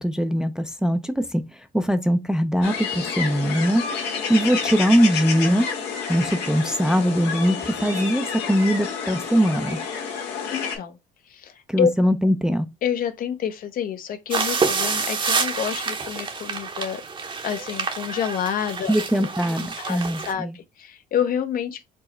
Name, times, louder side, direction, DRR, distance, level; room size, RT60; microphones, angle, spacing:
voice 1, 0.0-1.4 1.7-3.8 4.3-5.7 6.1-9.8 11.7-12.7 18.9-20.5, equal, 5° right, 0.4 m, -21 dB
sound 1, 2.6-10.8, left 6 dB, 85° left, 1.2 m, -29 dB
voice 2, 10.5-11.0 11.3-11.9 12.8-17.0 17.4-18.9 19.2-19.3 19.6-21.9, left 8 dB, 55° left, 0.7 m, -28 dB
sound 2, 14.3-20.3, right 4 dB, 30° right, 0.7 m, -27 dB
4.5 x 2.0 x 4.2 m
cardioid pair, 110°, 17 cm